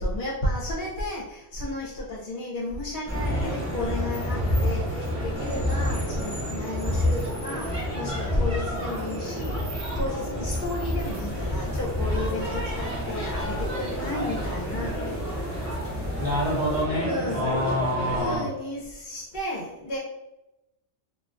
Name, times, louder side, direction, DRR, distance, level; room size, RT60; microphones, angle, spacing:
voice 1, 0.0-15.0 15.3-16.0 17.0-17.7 18.1-20.0, left 1 dB, 55° left, -5 dB, 0.8 m, -33 dB
sound 1, 3.1-18.4, equal, 10° right, 1.0 m, -29 dB
sound 2, 11.0-16.8, equal, 20° left, 1.3 m, -38 dB
voice 2, 16.2-18.5, equal, 40° right, -7 dB, 1.3 m, -27 dB
3.7 x 2.2 x 2.4 m, 0.95 s
omnidirectional pair, 1.2 m